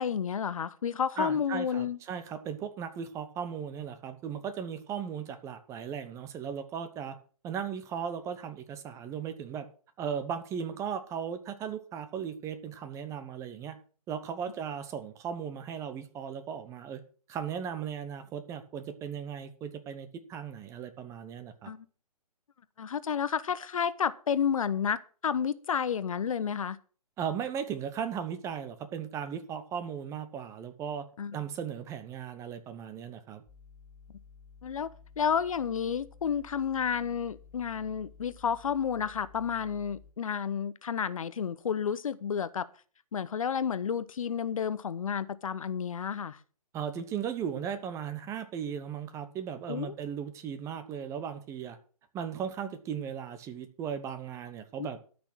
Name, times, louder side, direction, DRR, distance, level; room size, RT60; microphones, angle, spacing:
voice 1, 0.0-2.0 21.7-21.9 22.8-26.8 31.2-31.4 34.6-34.9 35.2-42.7 43.1-46.4 49.7-49.9 54.8-54.9, left 7 dB, 60° left, 0.8 m, -31 dB
voice 2, 1.2-7.2 7.4-9.7 10.0-13.8 14.1-17.0 17.3-21.7 27.2-31.0 31.3-33.4 46.7-51.8 52.1-55.0, right 8 dB, 15° right, 1.0 m, -37 dB
sound 1, 33.5-40.1, left 6 dB, 5° left, 3.0 m, -54 dB
13.0 x 6.2 x 6.1 m
figure-of-eight pair, 135°, 19 cm